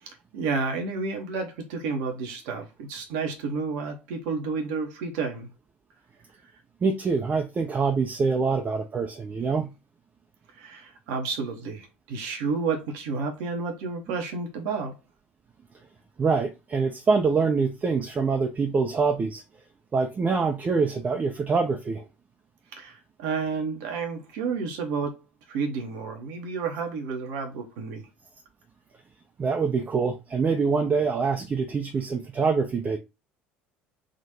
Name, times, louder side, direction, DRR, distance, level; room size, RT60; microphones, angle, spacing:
voice 1, 0.0-5.5 10.5-15.0 22.7-25.2 25.5-28.1, right 4 dB, 65° right, 1.0 m, -31 dB
voice 2, 6.8-9.7 16.2-19.4 19.9-22.0 29.4-33.0, right 4 dB, 30° right, 0.7 m, -25 dB
3.8 x 2.5 x 4.3 m
figure-of-eight pair, 60°, 5 cm